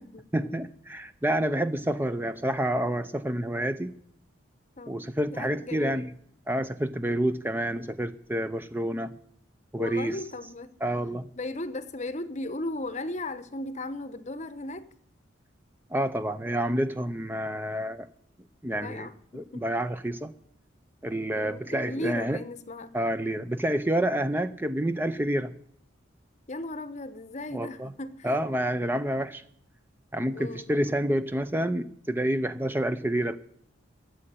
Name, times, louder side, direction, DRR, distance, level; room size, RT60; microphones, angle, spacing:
voice 1, 0.3-3.9 4.9-6.1 6.5-9.1 9.7-10.2 10.8-11.3 15.9-18.1 18.6-19.1 19.3-20.3 21.0-22.4 22.9-25.5 27.5-27.9 28.2-29.4 30.1-33.4, right 1 dB, 10° right, 0.5 m, -28 dB
voice 2, 5.3-6.1 9.8-10.8 11.4-14.9 18.7-19.7 21.3-23.0 26.5-28.4 30.3-30.7, left 2 dB, 35° left, 0.8 m, -36 dB
13.0 x 7.6 x 8.9 m
head